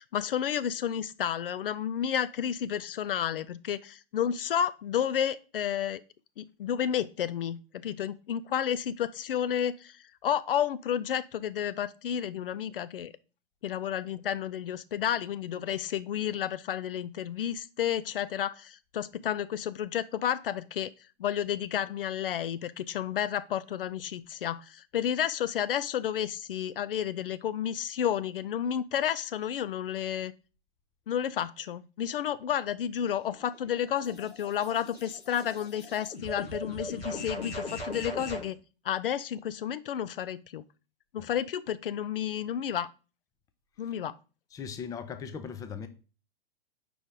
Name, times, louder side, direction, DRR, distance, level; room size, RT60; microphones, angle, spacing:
voice 1, 0.0-6.0 6.4-13.1 13.6-20.9 21.2-30.3 31.1-38.6 38.8-40.6 41.1-42.9 43.8-44.2, left 9 dB, 65° left, 0.5 m, -31 dB
sound 1, 33.1-38.5, left 1 dB, 80° left, 2.7 m, -40 dB
voice 2, 44.5-45.9, left 6 dB, 10° left, 0.5 m, -39 dB
5.0 x 5.0 x 3.7 m
figure-of-eight pair, 105°, 30 cm